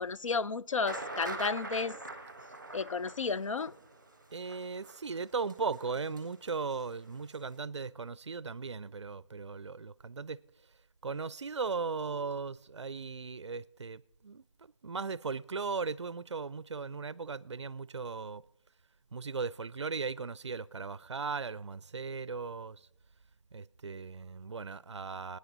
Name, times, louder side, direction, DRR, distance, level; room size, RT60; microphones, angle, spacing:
voice 1, 0.0-2.0 2.7-3.7, left 4 dB, 80° left, 0.4 m, -32 dB
sound 1, 0.8-6.5 6.7-6.8 7.3-7.4, right 2 dB, 10° right, 0.8 m, -43 dB
voice 2, 4.3-10.4 11.0-18.4 19.1-22.9 23.5-25.4, right 4 dB, 60° right, 0.4 m, -37 dB
24.0 x 9.6 x 4.0 m
figure-of-eight pair, 180°, 16 cm